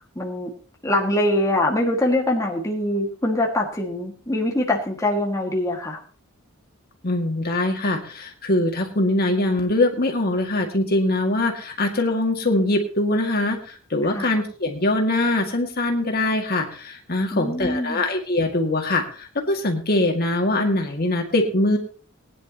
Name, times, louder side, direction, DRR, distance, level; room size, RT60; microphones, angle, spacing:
voice 1, 0.2-0.5 0.8-6.0 14.0-14.4 17.3-18.0, left 1 dB, 15° left, -1 dB, 2.0 m, -23 dB
voice 2, 7.0-21.8, left 2 dB, 50° left, 2 dB, 2.1 m, -22 dB
20.0 x 10.5 x 3.0 m, 0.40 s
head